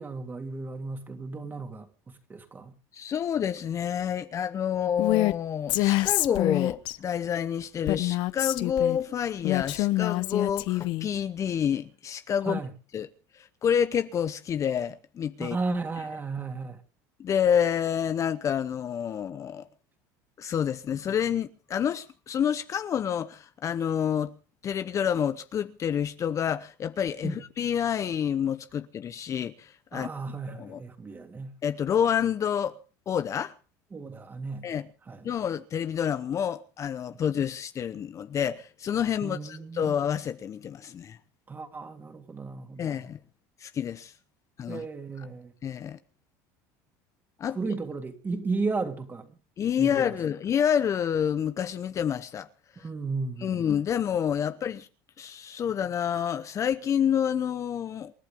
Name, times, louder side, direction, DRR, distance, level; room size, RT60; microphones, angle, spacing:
voice 1, 0.0-2.7 12.5-12.7 15.4-16.8 27.2-27.4 29.9-31.5 33.9-34.7 35.1-35.2 39.2-39.9 41.5-43.0 44.7-45.5 47.5-49.3 49.8-50.0 52.8-53.6, right 3 dB, 20° right, 3.0 m, -34 dB
voice 2, 2.9-12.6 12.9-13.1 13.3-15.6 17.2-19.7 20.4-24.3 24.6-30.1 30.5-30.8 31.6-32.8 33.1-33.5 34.6-34.9 35.2-41.2 42.8-43.2 43.6-44.1 44.6-44.8 45.2-45.3 45.6-46.0 47.4-47.6 49.6-52.5 53.4-54.9 55.2-58.1, left 8 dB, 35° left, 0.9 m, -28 dB
Female speech woman speaking, 5.0-5.3 5.7-7.0 7.9-9.0 9.4-11.1, left 18 dB, 65° left, 0.9 m, -26 dB
28.0 x 11.5 x 3.7 m
supercardioid pair, 110°, 9 cm